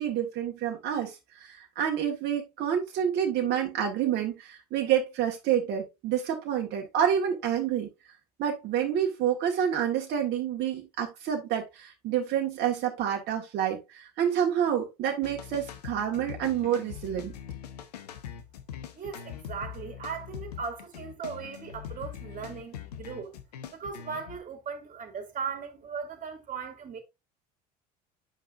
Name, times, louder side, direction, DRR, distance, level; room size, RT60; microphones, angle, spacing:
voice 1, 0.0-7.9 8.4-17.3, right 9 dB, 60° right, 1.7 m, -28 dB
sound 1, 15.2-24.4, left 9 dB, 90° left, 0.9 m, -42 dB
voice 2, 19.0-23.4 23.7-27.0, right 6 dB, 45° right, 2.5 m, -38 dB
9.1 x 5.7 x 2.6 m
hypercardioid pair, 70°, 20 cm